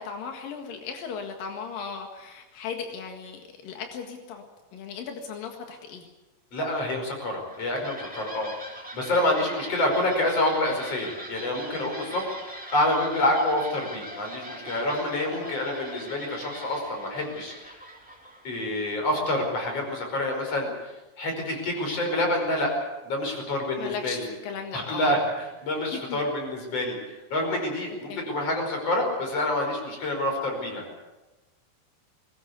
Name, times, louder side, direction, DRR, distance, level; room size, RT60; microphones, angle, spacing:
voice 1, 0.0-4.4 4.7-6.1 15.3-15.5 23.8-25.1 25.9-26.2 28.1-28.2, left 6 dB, 90° left, 4 dB, 3.5 m, -37 dB
voice 2, 6.5-8.5 8.9-12.3 12.7-17.8 18.4-22.7 23.0-24.3 24.7-30.8, left 1 dB, 45° left, 2 dB, 6.2 m, -27 dB
sound 1, 7.2-19.7, right 1 dB, 5° right, 2.4 m, -42 dB
21.0 x 20.0 x 8.3 m, 1.1 s
omnidirectional pair, 3.8 m